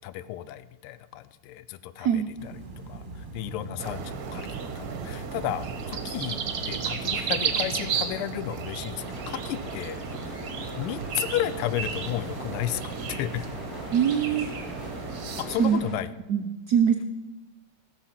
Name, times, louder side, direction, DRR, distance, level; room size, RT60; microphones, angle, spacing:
voice 1, 0.0-2.6 2.9-5.7 5.9-10.4 10.8-13.5 15.4-16.1, left 13 dB, 85° left, 15 dB, 1.5 m, -33 dB
voice 2, 2.0-2.3 13.9-14.5 15.6-15.8 16.3-17.1, right 8 dB, 80° right, 6 dB, 0.8 m, -23 dB
sound 1, 2.4-15.6, right 3 dB, 30° right, 1.2 m, -42 dB
sound 2, 3.8-15.7, right 7 dB, 55° right, 1.1 m, -34 dB
sound 3, 8.9-15.9, left 1 dB, 35° left, 3.7 m, -41 dB
16.0 x 6.3 x 5.8 m, 1.1 s
omnidirectional pair, 2.4 m